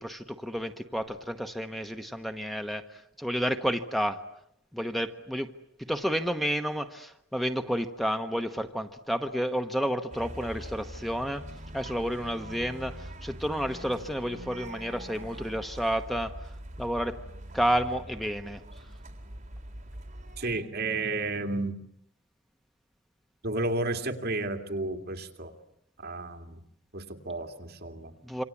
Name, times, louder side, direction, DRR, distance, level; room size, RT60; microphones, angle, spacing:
voice 1, 0.0-2.8 3.2-4.2 4.7-5.5 5.9-11.4 11.7-12.9 13.2-16.3 16.8-17.1 17.5-18.6 28.3-28.4, equal, ahead, 8 dB, 1.0 m, -30 dB
sound 1, 10.1-20.6, right 1 dB, 40° right, 3.9 m, -43 dB
voice 2, 20.4-21.8 23.4-25.5 26.0-26.6 26.9-28.1, right 2 dB, 55° right, 5 dB, 2.5 m, -32 dB
27.0 x 25.5 x 8.5 m, 0.76 s
head